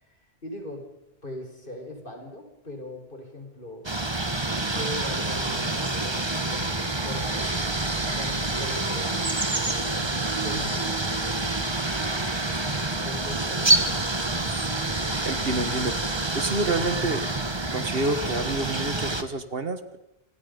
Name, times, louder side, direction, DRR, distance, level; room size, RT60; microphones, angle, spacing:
voice 1, 0.1-0.9 1.2-3.9 4.6-9.3 10.0-11.0 12.7-14.3, left 2 dB, 55° left, 3 dB, 5.1 m, -40 dB
sound 1, 3.8-19.2, right 2 dB, 25° right, 1.5 m, -27 dB
voice 2, 15.2-17.2 17.7-20.0, right 2 dB, 65° right, 10 dB, 1.9 m, -28 dB
27.0 x 21.5 x 5.4 m, 0.91 s
omnidirectional pair, 1.1 m